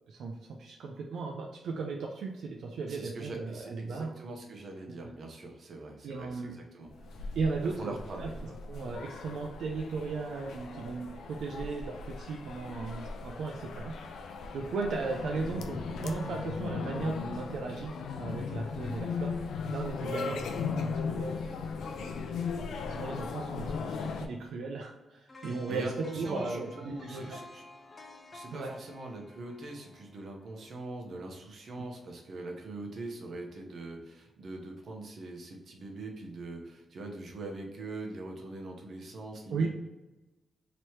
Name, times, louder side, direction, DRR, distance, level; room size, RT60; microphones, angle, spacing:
voice 1, 0.1-4.1 6.0-6.6 7.3-8.3 8.7-13.9 14.5-19.4 19.7-22.2 22.9-27.4 28.5-28.7 39.5-39.7, right 4 dB, 85° right, 0 dB, 0.5 m, -36 dB
voice 2, 2.9-7.2 7.8-8.5 8.8-9.0 25.7-27.6 28.3-39.7, right 2 dB, 60° right, 1 dB, 0.9 m, -42 dB
sound 1, 6.9-24.3, left 5 dB, 85° left, 0.4 m, -37 dB
sound 2, 25.3-31.3 31.7-31.8, left 2 dB, 30° left, 0.5 m, -51 dB
3.1 x 3.0 x 4.4 m, 1.0 s
cardioid pair, 105°, 0 cm